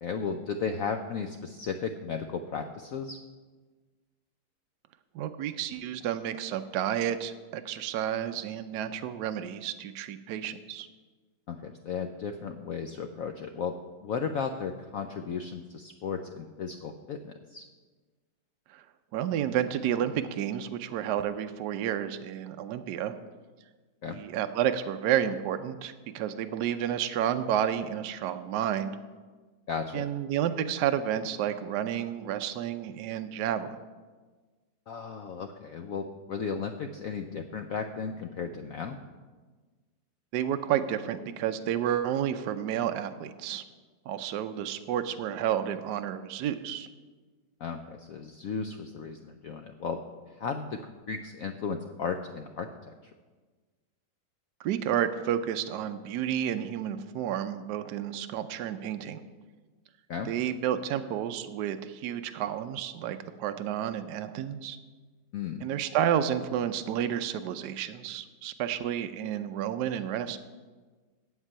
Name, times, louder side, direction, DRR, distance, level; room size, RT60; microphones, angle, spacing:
voice 1, 0.0-3.2 11.5-17.6 24.0-24.2 29.7-30.1 34.9-39.0 47.6-52.9 60.1-60.3 65.3-65.7, left 6 dB, 85° left, 6 dB, 0.7 m, -35 dB
voice 2, 5.1-10.9 18.7-18.8 19.1-23.1 24.1-29.0 29.9-33.8 40.3-43.6 44.1-46.9 54.6-59.2 60.3-64.8 65.6-70.4, right 10 dB, 70° right, 8 dB, 1.1 m, -31 dB
8.1 x 7.5 x 8.7 m, 1.4 s
omnidirectional pair, 2.1 m